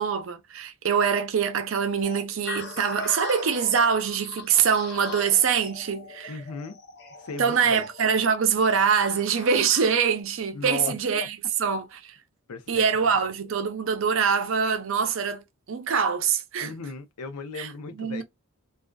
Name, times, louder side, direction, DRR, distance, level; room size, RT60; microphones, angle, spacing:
voice 1, 0.0-6.3 7.4-12.1 12.7-15.4 15.7-16.7 17.6-17.7 18.0-18.2, right 6 dB, 60° right, 0.5 m, -24 dB
sound 1, 2.0-10.2, left 3 dB, 50° left, 0.6 m, -40 dB
voice 2, 6.3-6.8 7.2-7.8 10.5-11.3 12.5-13.0 16.6-18.2, left 4 dB, 90° left, 0.6 m, -36 dB
2.5 x 2.3 x 2.2 m
head